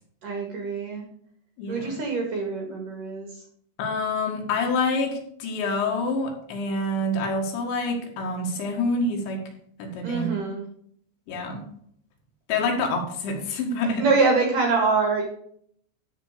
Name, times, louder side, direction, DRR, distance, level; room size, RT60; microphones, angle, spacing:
voice 1, 0.2-1.0 1.7-3.4 10.0-10.6 14.0-15.2, right 4 dB, 55° right, 1 dB, 2.6 m, -24 dB
voice 2, 1.6-2.0 3.8-9.4 9.8-10.3 11.3-11.7 12.5-14.1, left 2 dB, 65° left, 1 dB, 3.9 m, -27 dB
13.5 x 4.7 x 6.6 m, 0.66 s
omnidirectional pair, 5.8 m